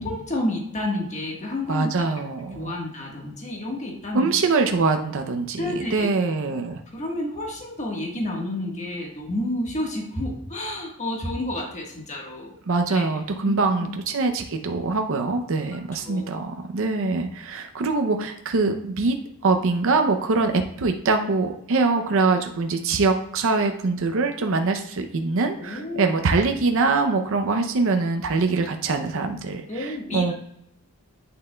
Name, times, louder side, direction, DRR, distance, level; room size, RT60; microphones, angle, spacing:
voice 1, 0.0-1.9 2.5-4.3 5.6-6.1 6.9-12.5 12.9-13.0 13.4-13.5 13.8-13.9 16.0-16.2 25.6-26.1 29.7-30.3, left 1 dB, 35° left, -1 dB, 1.4 m, -30 dB
voice 2, 1.7-2.8 4.1-6.8 12.7-30.3, right 3 dB, 60° right, 5 dB, 0.6 m, -23 dB
8.7 x 6.7 x 2.2 m, 0.75 s
head